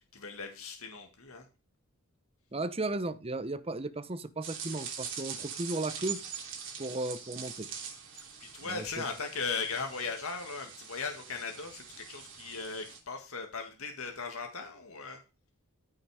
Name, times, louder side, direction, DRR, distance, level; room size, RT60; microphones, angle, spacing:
voice 1, 0.1-1.5 8.4-15.2, left 4 dB, 70° left, 1.9 m, -38 dB
voice 2, 2.5-6.2 6.8-7.7 8.6-9.0, right 2 dB, 25° right, 0.9 m, -35 dB
sound 1, 4.4-13.0, right 7 dB, 60° right, 3.3 m, -43 dB
14.0 x 6.4 x 4.9 m
head